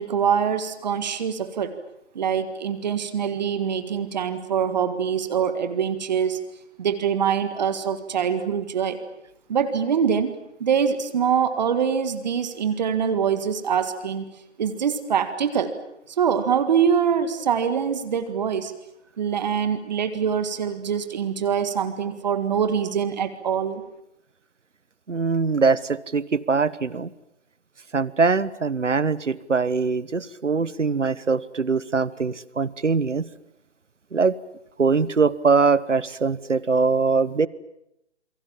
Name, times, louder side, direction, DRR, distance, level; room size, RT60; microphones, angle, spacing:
voice 1, 0.0-1.7 2.2-6.4 6.8-9.0 9.5-10.3 10.6-14.3 14.6-15.7 16.1-18.7 19.2-23.8, right 7 dB, 35° right, 10 dB, 1.9 m, -24 dB
voice 2, 25.1-27.1 27.9-33.3 34.1-34.4 34.8-37.5, right 4 dB, 85° right, 19 dB, 1.3 m, -22 dB
28.5 x 22.5 x 7.4 m, 0.83 s
figure-of-eight pair, 150°, 36 cm